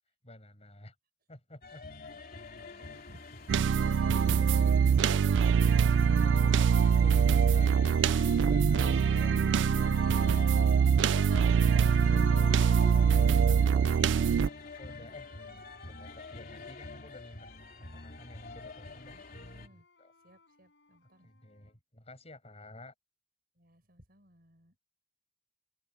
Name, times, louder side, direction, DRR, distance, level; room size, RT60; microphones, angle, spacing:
voice 1, 0.2-1.0 1.3-1.8 4.0-4.6 5.0-11.1 11.6-13.9 14.6-15.4 15.8-19.2 19.7-20.1 21.2-22.9, left 1 dB, 35° left, 7.6 m, -51 dB
sound 1, 1.6-19.7, left 3 dB, 55° left, 2.9 m, -46 dB
voice 2, 2.5-3.2 3.7-3.9 14.8-15.6 19.1-19.9 20.2-21.3 23.5-24.8, right 1 dB, 55° right, 6.5 m, -61 dB
sound 2, 3.5-14.5, right 7 dB, 80° right, 0.3 m, -24 dB
Wind instrument woodwind instrument, 13.5-17.1 17.5-21.7, left 4 dB, 75° left, 5.6 m, -63 dB
open air
head